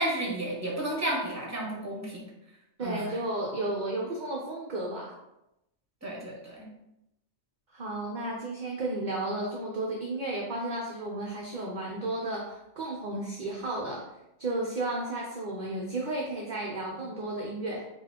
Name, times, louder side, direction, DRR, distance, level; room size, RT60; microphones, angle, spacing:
voice 1, 0.0-2.3 2.8-3.1 6.0-6.7, right 1 dB, 15° right, -3 dB, 1.0 m, -32 dB
voice 2, 2.8-5.1 7.7-14.0 14.4-17.9, right 2 dB, 50° right, -2 dB, 0.6 m, -33 dB
3.9 x 2.5 x 4.4 m, 0.87 s
omnidirectional pair, 1.4 m